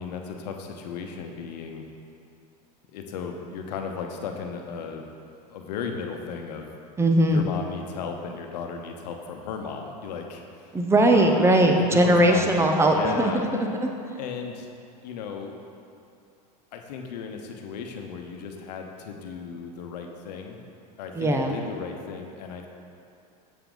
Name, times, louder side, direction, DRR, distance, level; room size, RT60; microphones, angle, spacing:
voice 1, 0.0-1.8 2.9-5.0 5.5-6.7 7.2-10.7 11.1-11.4 11.8-13.5 14.2-14.7 15.0-15.5 16.7-20.6 21.0-22.7, left 6 dB, 80° left, 3 dB, 0.9 m, -35 dB
voice 2, 7.0-7.4 10.7-13.9 21.1-21.6, right 1 dB, 10° right, 3 dB, 0.8 m, -20 dB
7.1 x 6.9 x 3.9 m, 2.6 s
supercardioid pair, 105°, 21 cm